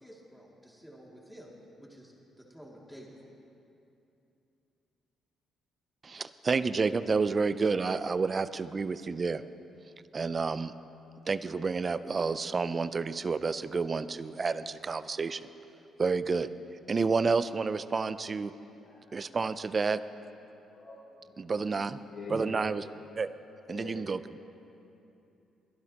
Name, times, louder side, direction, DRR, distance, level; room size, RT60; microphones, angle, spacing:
voice 1, 0.0-1.5 1.8-2.1 2.4-3.1, equal, ahead, -4 dB, 2.4 m, -51 dB
voice 2, 6.0-9.4 10.1-10.7 11.3-15.4 16.0-16.5 16.9-18.5 19.1-20.0 21.4-22.0 22.3-22.8 23.2-23.3 23.7-24.4, right 4 dB, 35° right, 14 dB, 0.4 m, -30 dB
voice 3, 18.8-19.5 20.7-21.4 22.1-22.7 23.7-23.9 24.3-24.4, left 3 dB, 70° left, -9 dB, 3.6 m, -45 dB
21.5 x 12.0 x 2.9 m, 2.8 s
cardioid pair, 90°, 0 cm